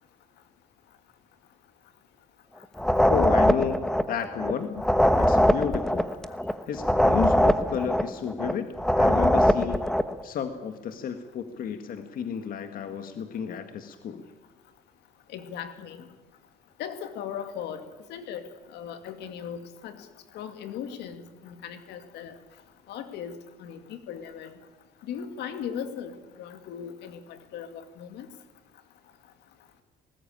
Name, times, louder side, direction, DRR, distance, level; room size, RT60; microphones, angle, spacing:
sound 1, 2.8-10.1, equal, 5° left, 1.2 m, -22 dB
voice 1, 3.1-4.8 5.2-6.1 6.7-8.7 9.0-9.9 10.2-14.2, left 7 dB, 55° left, 8 dB, 1.6 m, -32 dB
voice 2, 15.3-16.0 16.8-17.8 18.1-18.4 18.7-20.1 20.3-22.3 22.9-23.3 23.6-24.6 25.1-26.1 26.4-27.2 27.5-28.3, left 8 dB, 80° left, 9 dB, 2.3 m, -38 dB
20.0 x 19.0 x 8.8 m, 1.2 s
cardioid pair, 110°, 17 cm